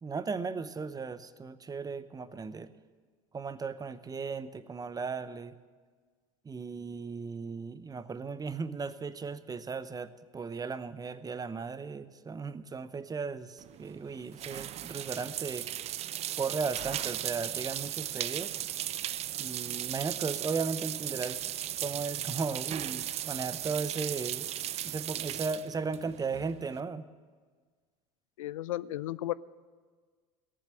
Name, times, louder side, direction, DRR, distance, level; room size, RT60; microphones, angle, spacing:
voice 1, 0.0-2.7 3.3-5.6 6.4-15.7 16.4-18.5 19.4-21.4 21.8-24.5 24.8-27.1, right 5 dB, 20° right, 14 dB, 0.8 m, -36 dB
sound 1, 13.6-26.8, right 12 dB, 40° right, 0.4 m, -37 dB
voice 2, 28.4-29.3, left 15 dB, 80° left, 18 dB, 0.4 m, -34 dB
17.5 x 7.5 x 8.7 m, 1.5 s
hypercardioid pair, 70°, 17 cm